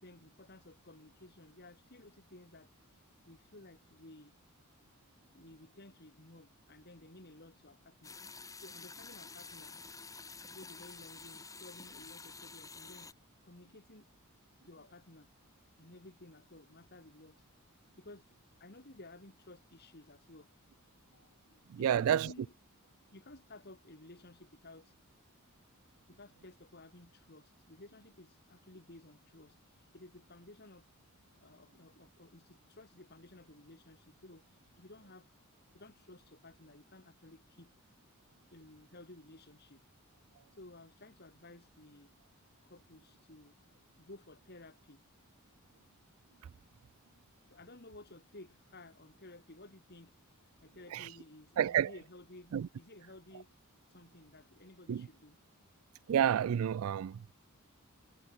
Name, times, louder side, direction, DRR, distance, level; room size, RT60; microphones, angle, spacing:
voice 1, 0.0-2.7 3.2-4.3 5.3-8.2 8.6-9.8 10.5-14.1 14.6-15.3 15.8-17.4 18.0-18.3 18.6-20.5 21.1-22.5 23.1-25.0 26.1-30.9 31.4-35.3 35.7-37.7 38.5-39.8 40.5-42.1 42.6-43.5 44.0-45.0 47.5-53.5 53.9-55.4, left 2 dB, 45° left, 3.2 m, -55 dB
sound 1, 8.0-13.1, left 4 dB, 15° left, 3.4 m, -49 dB
voice 2, 21.7-22.3 50.9-51.1 51.6-51.9 52.5-52.7 54.9-55.1 56.1-57.3, right 9 dB, 70° right, 0.3 m, -30 dB
head